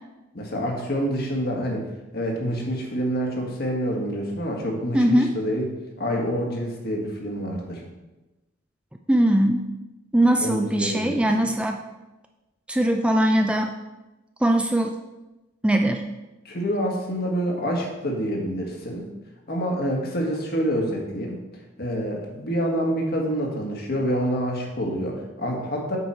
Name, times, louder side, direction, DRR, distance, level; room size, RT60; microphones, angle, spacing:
voice 1, 0.3-1.9 2.1-5.7 6.0-7.8 10.4-11.3 16.4-19.1 19.5-21.4 21.8-26.0, equal, 55° left, 0 dB, 1.5 m, -27 dB
voice 2, 4.9-5.3 9.1-9.6 10.1-11.8 12.7-13.7 14.4-14.9 15.6-16.0, right 1 dB, 5° right, 4 dB, 0.3 m, -20 dB
8.1 x 4.7 x 4.3 m, 1.1 s
head